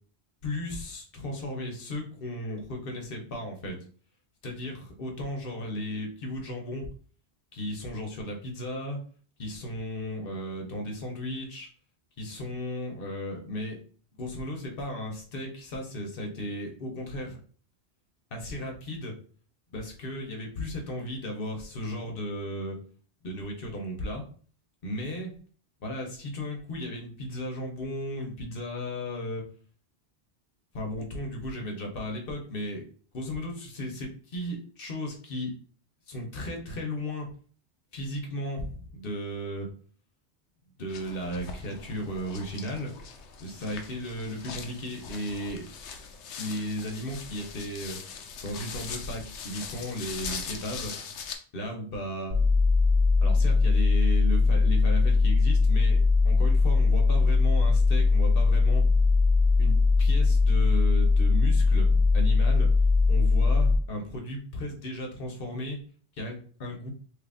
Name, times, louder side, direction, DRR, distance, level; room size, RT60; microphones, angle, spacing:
voice 1, 0.4-3.8 4.4-6.9 7.5-9.0 9.4-11.7 12.2-13.8 14.2-17.4 18.3-19.1 19.7-22.8 23.2-24.2 24.8-25.3 25.8-29.4 30.7-32.8 33.1-35.5 36.1-37.3 37.9-39.7 40.8-42.9 43.4-45.6 46.4-48.0 48.4-50.9 51.5-52.4 53.2-58.8 59.6-59.7 60.0-62.7 63.1-65.8 66.2-66.9, left 1 dB, 60° left, 2 dB, 1.0 m, -35 dB
sound 1, 40.9-51.4, left 5 dB, 90° left, 0.9 m, -41 dB
sound 2, 52.3-63.8, left 3 dB, 75° right, 1.6 m, -21 dB
3.2 x 2.5 x 3.4 m, 0.43 s
omnidirectional pair, 1.1 m